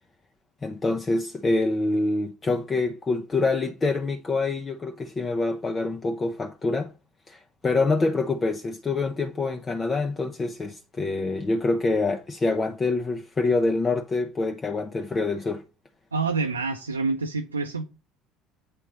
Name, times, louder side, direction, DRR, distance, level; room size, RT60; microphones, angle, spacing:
voice 1, 0.6-6.9 7.3-15.6, left 3 dB, 25° left, 0.8 m, -26 dB
voice 2, 16.1-17.8, right 4 dB, 85° right, 0.6 m, -27 dB
8.5 x 4.4 x 5.2 m
figure-of-eight pair, 60°, 0 cm